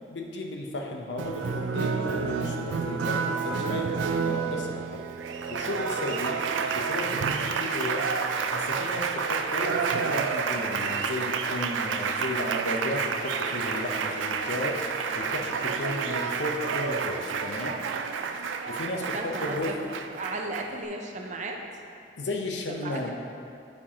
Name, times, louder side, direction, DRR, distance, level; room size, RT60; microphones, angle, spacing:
voice 1, 0.1-5.0 5.5-6.4 6.7-8.1 8.5-14.8 15.2-17.8 18.7-19.8 22.2-23.1, left 1 dB, 65° left, 1 dB, 0.7 m, -34 dB
Applause, 1.2-20.8, right 5 dB, 85° right, 0.4 m, -29 dB
sound 1, 8.3-10.8, right 2 dB, 20° right, 1.6 m, -51 dB
voice 2, 19.1-19.7 20.2-21.6 22.7-23.1, right 2 dB, 40° right, 2 dB, 0.6 m, -35 dB
9.6 x 4.5 x 2.8 m, 2.5 s
head